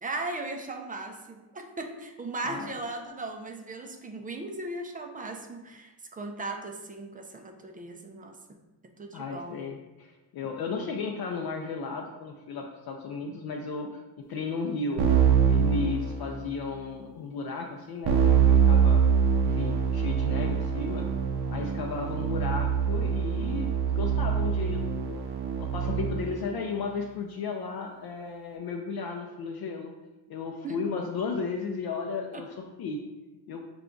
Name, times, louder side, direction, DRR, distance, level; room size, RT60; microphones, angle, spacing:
voice 1, 0.0-8.6 9.0-9.8 30.6-30.8 32.3-32.4, right 2 dB, 20° right, 4 dB, 0.3 m, -37 dB
voice 2, 9.1-15.1 15.4-19.0 19.4-21.1 21.5-25.2 25.6-29.9 30.3-33.0 33.5-33.6, left 4 dB, 60° left, 2 dB, 0.5 m, -34 dB
Keyboard (musical), 15.0-16.7 18.0-26.4, right 7 dB, 65° right, 0.6 m, -24 dB
5.0 x 2.3 x 3.7 m, 1.1 s
cardioid pair, 115°, 43 cm